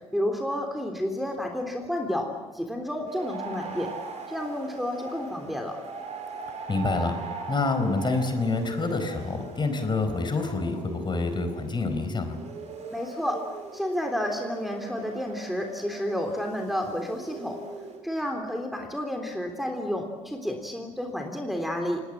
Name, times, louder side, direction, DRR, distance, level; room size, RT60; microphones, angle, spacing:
voice 1, 0.1-3.9 4.3-5.8 12.9-13.4 13.7-17.6 18.0-22.0, left 1 dB, ahead, 2 dB, 3.5 m, -30 dB
sound 1, 3.1-18.0, right 4 dB, 45° right, 5.3 m, -40 dB
voice 2, 6.7-7.2 7.5-12.4, left 3 dB, 30° left, 7 dB, 4.6 m, -27 dB
29.5 x 19.0 x 7.5 m, 1.3 s
figure-of-eight pair, 55°, 16 cm